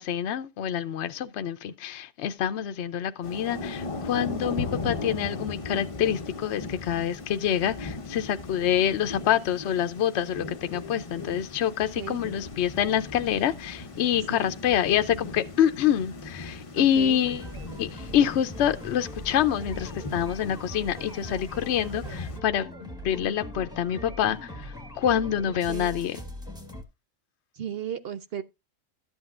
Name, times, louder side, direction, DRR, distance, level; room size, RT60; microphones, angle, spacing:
voice 1, 0.0-17.5 17.8-26.2, left 10 dB, 65° left, 0.9 m, -26 dB
Thunder / Rain, 3.2-22.4, left 3 dB, 30° left, 0.7 m, -38 dB
voice 2, 16.8-17.2 25.7-25.9 27.6-28.4, right 9 dB, 55° right, 0.8 m, -35 dB
sound 1, 17.2-26.8, equal, 5° right, 1.4 m, -41 dB
12.5 x 8.1 x 2.4 m
omnidirectional pair, 1.4 m